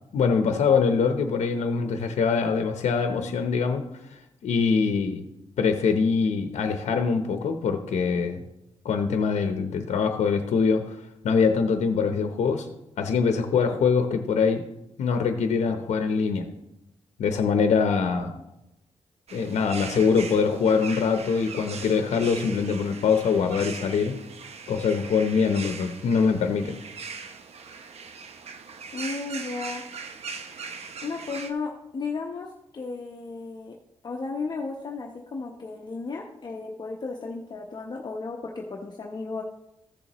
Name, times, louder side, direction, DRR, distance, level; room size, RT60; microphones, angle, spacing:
voice 1, 0.1-3.8 4.1-5.2 5.6-8.4 8.8-11.0 11.2-12.7 13.0-14.6 15.0-16.5 17.2-18.3 19.3-24.2 24.7-26.7, left 5 dB, 80° left, 6 dB, 0.8 m, -23 dB
sound 1, 19.3-31.5, right 5 dB, 65° right, 0.8 m, -40 dB
voice 2, 28.9-29.9 31.0-33.8 34.0-39.4, left 4 dB, 40° left, 0 dB, 0.9 m, -34 dB
14.5 x 6.9 x 3.0 m, 0.90 s
cardioid pair, 110°, 11 cm